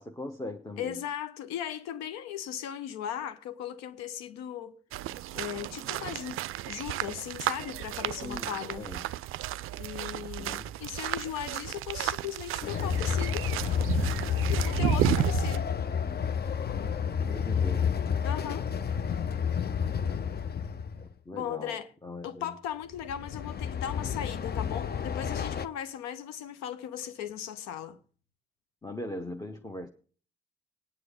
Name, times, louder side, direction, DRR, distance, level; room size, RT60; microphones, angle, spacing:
voice 1, 0.0-1.0 8.2-9.1 10.4-10.7 17.2-18.0 21.0-22.5 28.8-29.9, left 1 dB, 10° left, 1.1 m, -40 dB
voice 2, 0.8-4.8 5.3-8.9 9.8-13.5 14.5-15.7 18.2-18.7 21.3-21.9 22.2-28.0, left 10 dB, 60° left, 1.0 m, -37 dB
sound 1, 4.9-15.6, right 14 dB, 45° right, 0.4 m, -33 dB
Train, 12.6-21.1 22.9-25.7, left 7 dB, 30° left, 0.8 m, -30 dB
18.5 x 9.6 x 3.6 m
figure-of-eight pair, 40°, 30 cm